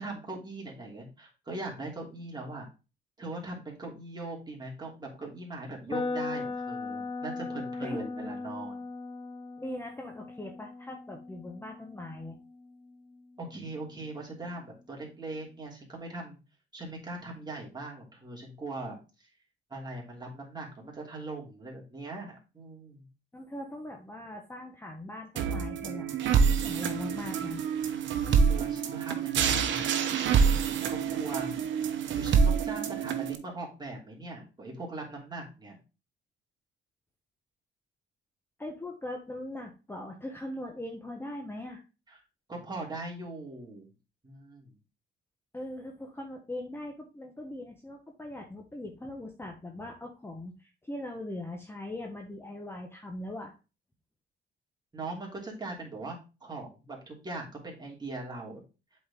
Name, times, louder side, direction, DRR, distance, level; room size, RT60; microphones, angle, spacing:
voice 1, 0.0-2.7 3.2-8.9 13.4-16.4 16.7-19.3 19.7-23.0 28.2-30.3 30.7-31.5 32.1-35.8 42.1-42.2 42.5-43.9 44.2-44.7 54.9-58.6, right 2 dB, 20° right, -2 dB, 3.0 m, -40 dB
sound 1, 5.9-13.8, left 3 dB, 25° left, 0.6 m, -38 dB
voice 2, 7.8-8.1 9.6-12.4 17.2-17.3 23.3-26.2 26.4-27.6 38.6-41.8 45.5-53.5, left 1 dB, 10° left, 1 dB, 1.1 m, -40 dB
sound 2, 25.4-33.4, right 6 dB, 70° right, 0.9 m, -27 dB
7.6 x 4.4 x 3.7 m, 0.31 s
cardioid pair, 90°, 20 cm